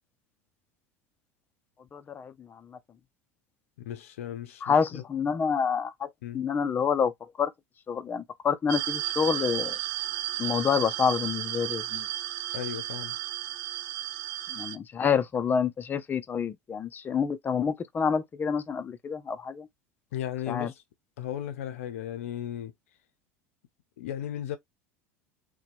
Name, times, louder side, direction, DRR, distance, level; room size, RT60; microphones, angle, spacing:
voice 1, 1.9-2.8 4.6-7.5 7.9-9.8 10.4-12.1 14.5-19.7 20.5-20.7, left 6 dB, 25° left, 0.5 m, -28 dB
voice 2, 3.8-5.0 6.2-6.4 12.5-13.2 20.1-20.8 21.2-22.7 24.0-24.6, left 11 dB, 70° left, 0.6 m, -36 dB
sound 1, 8.7-14.8, right 13 dB, 55° right, 0.4 m, -33 dB
2.8 x 2.2 x 2.5 m
hypercardioid pair, 80°, 8 cm